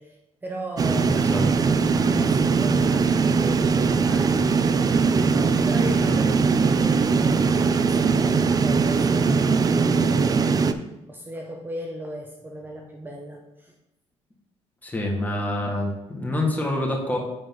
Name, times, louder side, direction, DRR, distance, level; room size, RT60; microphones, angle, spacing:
voice 1, 0.0-1.7 2.1-4.5 5.0-9.5 9.9-10.7 11.1-13.8, right 1 dB, 20° right, 0 dB, 0.9 m, -37 dB
sound 1, 0.8-10.7, right 5 dB, 35° right, 0.4 m, -20 dB
voice 2, 14.8-17.2, left 1 dB, 15° left, 0 dB, 1.7 m, -26 dB
9.4 x 3.9 x 3.8 m, 0.98 s
cardioid pair, 100°, 11 cm